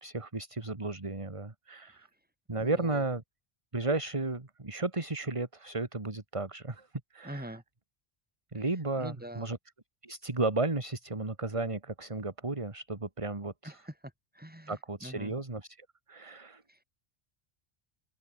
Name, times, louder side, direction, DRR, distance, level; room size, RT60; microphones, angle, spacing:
voice 1, 0.0-2.1 2.5-3.2 3.7-6.9 7.1-7.6 8.5-9.6 10.0-13.8 14.7-16.6, right 2 dB, 30° right, 2.0 m, -34 dB
voice 2, 2.6-3.0 7.2-7.6 8.6-8.7 9.0-9.5 13.6-13.9 14.3-15.4 16.7-16.8, equal, 10° right, 3.6 m, -44 dB
open air
omnidirectional pair, 1.0 m